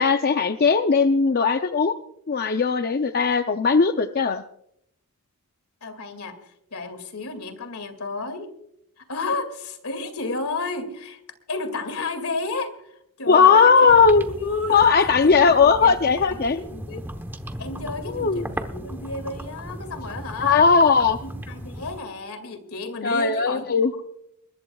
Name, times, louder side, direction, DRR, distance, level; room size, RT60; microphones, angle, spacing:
voice 1, 0.0-2.0 2.3-4.4 13.3-14.3 14.7-16.6 18.1-18.4 20.4-21.2 23.0-23.9, left 5 dB, 45° left, 8 dB, 0.5 m, -18 dB
voice 2, 5.8-8.5 9.0-11.2 11.5-13.9 14.3-14.9 15.2-17.1 17.6-20.7 21.2-24.0, left 3 dB, 75° left, 9 dB, 2.3 m, -32 dB
sound 1, 13.9-22.0, right 1 dB, 10° right, 1.0 m, -36 dB
21.0 x 20.0 x 2.3 m, 0.74 s
head